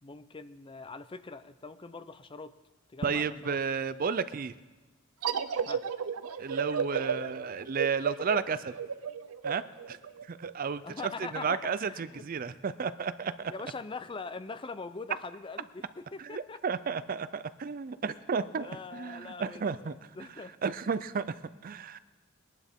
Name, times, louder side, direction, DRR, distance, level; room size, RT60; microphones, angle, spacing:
voice 1, 0.0-2.5 2.9-3.6 5.6-5.8 10.8-11.6 11.9-12.2 13.5-16.6 18.3-20.6, left 4 dB, 25° left, 12 dB, 0.5 m, -42 dB
voice 2, 3.0-4.5 6.4-8.7 9.4-13.5 16.2-19.9 20.6-22.0, right 5 dB, 40° right, 14 dB, 0.4 m, -33 dB
sound 1, 5.2-10.5, right 6 dB, 90° right, 0.6 m, -33 dB
21.5 x 11.0 x 3.6 m, 1.2 s
head